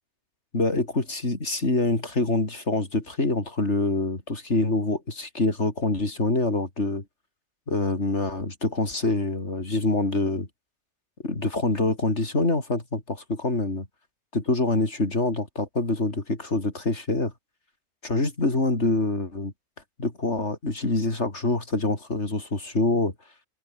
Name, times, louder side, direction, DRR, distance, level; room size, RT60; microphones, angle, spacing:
voice 1, 0.5-7.0 7.7-10.5 11.2-13.9 14.3-17.3 18.0-19.5 20.0-23.1, left 2 dB, 80° left, 4.4 m, -25 dB
omnidirectional pair, 1.2 m